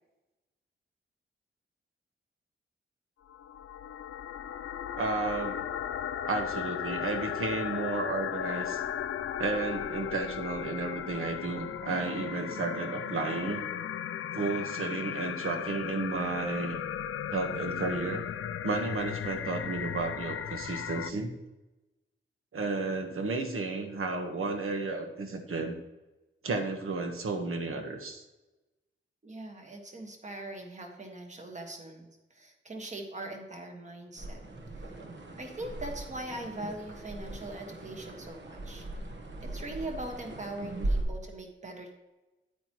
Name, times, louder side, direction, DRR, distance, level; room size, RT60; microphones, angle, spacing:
sound 1, 3.3-21.1, left 9 dB, 85° left, 0.4 m, -36 dB
voice 1, 5.0-5.5 6.2-8.8 9.4-13.6 14.3-16.8 17.3-18.2 18.6-21.3 22.5-25.8 26.4-28.2 40.6-40.9, right 3 dB, 80° right, 5 dB, 1.4 m, -32 dB
voice 2, 29.2-34.4 34.8-34.9 35.4-38.9 39.4-41.9, right 1 dB, 35° right, 3 dB, 1.5 m, -41 dB
sound 2, 34.2-41.0, right 2 dB, 60° right, 1.2 m, -38 dB
9.9 x 9.1 x 3.0 m, 1.1 s
wide cardioid pair, 170°, 21 cm